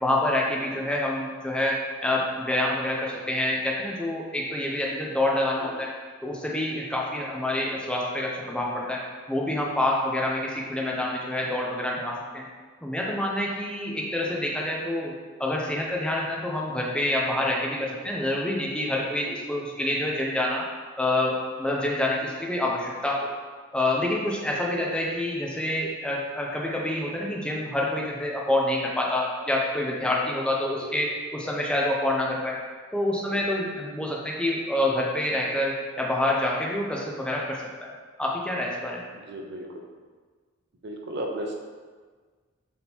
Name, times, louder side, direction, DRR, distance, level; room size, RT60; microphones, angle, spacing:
voice 1, 0.0-5.9 6.2-9.0 9.3-12.4 12.8-15.1 15.4-20.6 21.0-23.3 23.7-32.6 32.9-37.9 38.2-39.0, left 1 dB, 5° left, -3 dB, 0.5 m, -27 dB
voice 2, 39.1-39.8 40.8-41.5, right 1 dB, 55° right, 1 dB, 0.5 m, -35 dB
3.6 x 2.9 x 4.1 m, 1.5 s
head